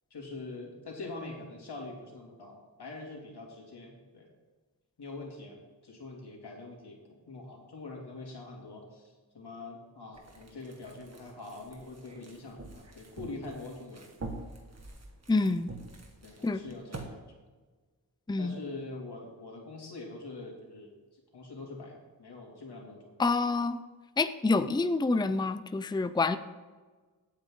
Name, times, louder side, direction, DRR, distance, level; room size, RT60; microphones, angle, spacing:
voice 1, 0.1-4.3 5.0-14.1 16.2-17.2 18.4-20.9 21.3-23.2, left 2 dB, 85° left, 0 dB, 2.9 m, -44 dB
sound 1, 10.1-17.1, right 2 dB, 40° right, 1.9 m, -46 dB
voice 2, 15.3-15.7 16.4-16.6 18.3-18.6 23.2-23.8 24.2-26.4, left 3 dB, 10° left, 11 dB, 0.5 m, -27 dB
17.0 x 8.7 x 3.9 m, 1.4 s
wide cardioid pair, 70°, 38 cm